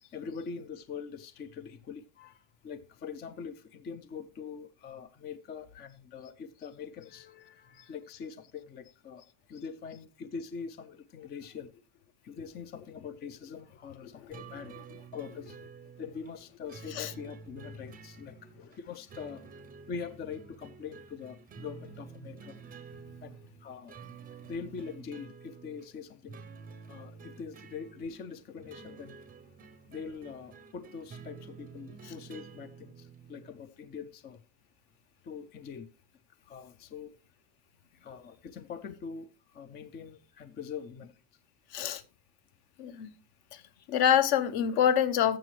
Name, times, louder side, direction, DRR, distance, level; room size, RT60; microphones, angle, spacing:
voice 1, 0.1-11.7 12.2-14.7 15.1-15.6 16.0-19.5 19.9-22.6 23.2-24.0 24.4-26.4 26.9-29.1 29.9-34.4 35.2-35.9 36.4-37.1 37.9-41.2 43.8-43.9, left 6 dB, 25° left, 0.3 m, -43 dB
sound 1, 14.3-33.5, right 6 dB, 20° right, 0.6 m, -50 dB
voice 2, 41.7-42.0 42.8-43.1 43.5-43.6 43.9-45.4, left 9 dB, 50° left, 0.9 m, -26 dB
13.5 x 6.9 x 3.1 m
cardioid pair, 150°, 49 cm